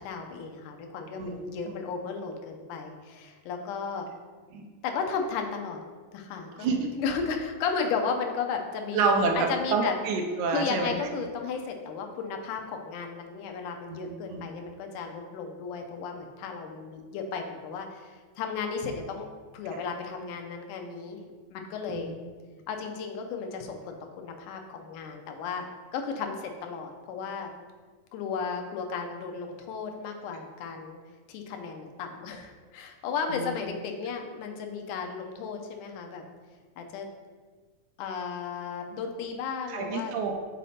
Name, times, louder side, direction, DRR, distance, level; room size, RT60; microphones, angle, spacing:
voice 1, 0.0-4.1 4.8-5.8 6.1-6.7 7.0-9.1 9.4-9.9 10.5-19.3 19.5-21.2 21.5-22.1 22.7-25.7 25.9-27.5 28.1-31.0 31.3-36.2 36.8-37.1 38.0-40.2, left 5 dB, 85° left, 4 dB, 2.2 m, -34 dB
voice 2, 1.2-1.7 4.5-4.7 6.6-6.9 8.9-10.9 14.0-14.5 19.7-19.8 21.9-22.0 33.3-33.5 39.7-40.3, right 4 dB, 85° right, 3 dB, 2.1 m, -28 dB
7.1 x 4.2 x 4.2 m, 1.5 s
omnidirectional pair, 3.6 m